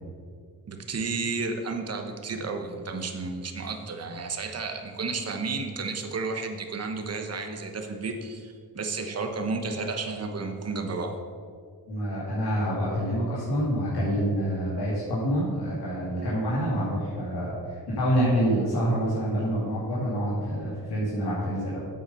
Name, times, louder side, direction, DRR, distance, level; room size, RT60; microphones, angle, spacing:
voice 1, 0.7-11.2, right 4 dB, 40° right, 5 dB, 1.1 m, -32 dB
voice 2, 11.9-21.8, equal, 75° left, -8 dB, 2.8 m, -27 dB
8.4 x 8.2 x 5.6 m, 2.1 s
cardioid pair, 125°, 39 cm